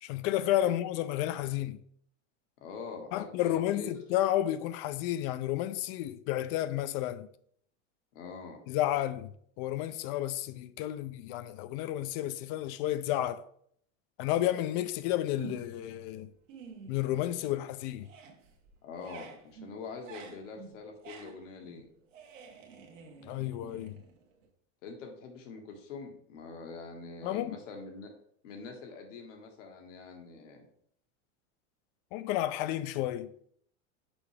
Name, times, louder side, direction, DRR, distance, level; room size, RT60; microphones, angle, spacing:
voice 1, 0.0-1.8 3.1-7.3 8.7-9.3 9.6-13.4 14.2-16.3 16.9-18.1 23.2-24.0 27.2-27.6 32.1-33.3, left 13 dB, 50° left, 0.5 m, -31 dB
voice 2, 2.6-3.9 8.1-8.6 18.8-21.8 24.8-28.1 28.4-30.7, left 4 dB, 75° left, 1.7 m, -44 dB
sound 1, 15.4-15.9 16.3-17.7 17.9-24.5, right 5 dB, 90° right, 1.3 m, -49 dB
6.1 x 4.7 x 3.3 m
supercardioid pair, 120°, 37 cm